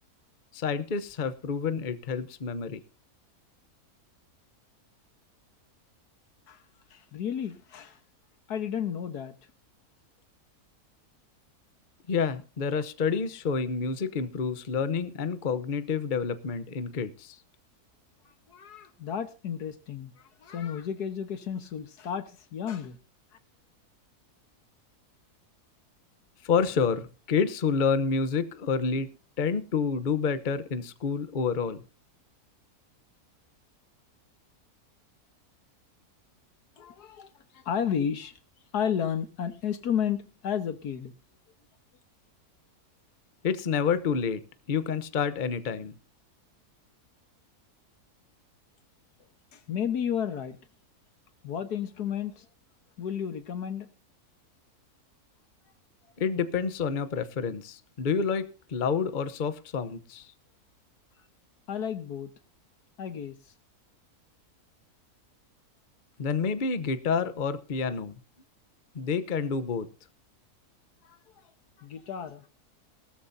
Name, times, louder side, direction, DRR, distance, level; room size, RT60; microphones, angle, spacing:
voice 1, 0.5-2.8 12.1-17.4 26.4-29.1 29.4-31.8 43.4-44.4 44.7-46.0 56.2-60.3 66.2-68.2 68.9-69.9, left 5 dB, 35° left, 0.9 m, -28 dB
voice 2, 6.9-8.0 8.5-9.4 18.5-23.0 36.8-38.3 38.7-41.1 49.5-50.6 51.4-52.5 53.0-53.9 61.7-62.3 63.0-63.4 71.0-71.2 71.8-72.5, left 8 dB, 85° left, 1.8 m, -32 dB
19.0 x 13.0 x 2.7 m
omnidirectional pair, 1.6 m